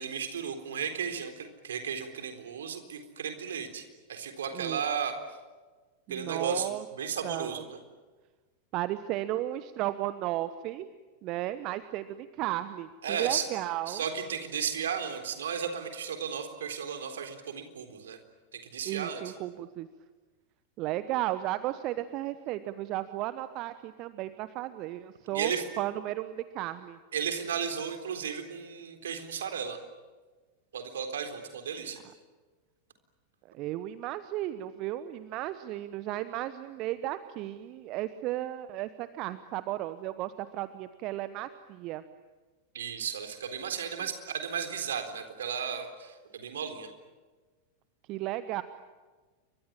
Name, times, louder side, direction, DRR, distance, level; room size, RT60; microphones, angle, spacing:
voice 1, 0.0-3.8 4.1-5.2 6.1-7.8 13.0-13.4 13.9-18.2 18.5-19.3 25.3-25.6 27.1-29.8 30.7-32.0 42.7-46.9, right 7 dB, 65° right, 6 dB, 3.8 m, -34 dB
voice 2, 4.5-4.8 6.1-6.8 7.2-7.6 8.7-10.9 11.2-14.0 18.8-19.9 20.8-25.5 25.8-27.0 33.5-42.0 48.1-48.6, right 15 dB, 40° right, 13 dB, 1.1 m, -34 dB
29.5 x 24.5 x 7.5 m, 1.3 s
figure-of-eight pair, 90°, 0 cm